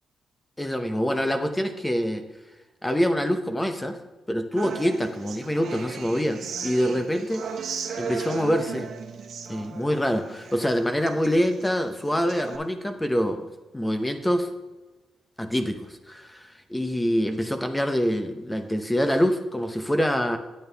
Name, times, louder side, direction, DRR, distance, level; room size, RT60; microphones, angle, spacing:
voice 1, 0.6-2.2 2.8-4.0 4.3-7.5 8.0-8.9 9.5-13.5 13.7-14.5 15.4-20.4, equal, 10° left, 7 dB, 0.8 m, -25 dB
Human voice / Acoustic guitar, 4.6-12.6, right 6 dB, 70° right, 1.1 m, -37 dB
8.8 x 8.7 x 3.4 m, 1.1 s
cardioid pair, 95°, 0 cm